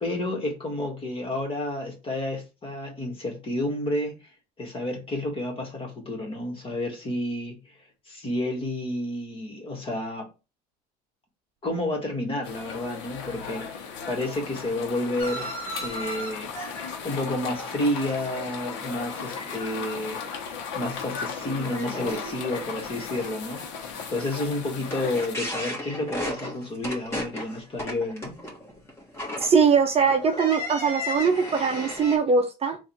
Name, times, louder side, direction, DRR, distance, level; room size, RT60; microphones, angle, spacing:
voice 1, 0.0-4.1 4.6-7.7 8.1-10.3 11.6-15.5 15.8-16.5 17.0-28.3, left 1 dB, 30° left, 1.6 m, -30 dB
sound 1, 12.4-25.3, left 6 dB, 75° left, 1.0 m, -36 dB
sound 2, 15.2-18.5 18.8-19.6 19.9-20.3 20.8-20.9 21.4-32.2, left 1 dB, 15° left, 1.7 m, -36 dB
voice 2, 29.4-32.8, right 5 dB, 30° right, 0.6 m, -21 dB
3.5 x 2.6 x 4.4 m
supercardioid pair, 105°, 19 cm